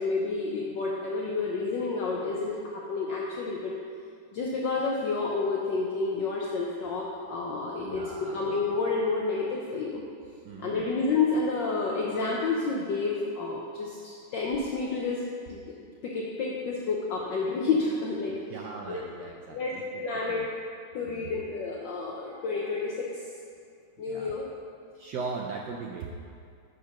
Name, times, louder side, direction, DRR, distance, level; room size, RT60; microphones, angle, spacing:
voice 1, 0.0-3.7 4.3-10.0 10.6-15.2 15.5-15.6 16.0-18.6 18.9-19.0 19.5-20.4 20.9-23.2 24.0-24.4, left 4 dB, 65° left, -3 dB, 1.3 m, -30 dB
voice 2, 7.8-8.5 10.4-10.8 18.3-19.8 20.3-20.4 21.1-21.3 24.1-24.4 25.0-26.1, right 4 dB, 75° right, 1 dB, 1.0 m, -39 dB
6.8 x 6.5 x 5.8 m, 2.3 s
omnidirectional pair, 2.4 m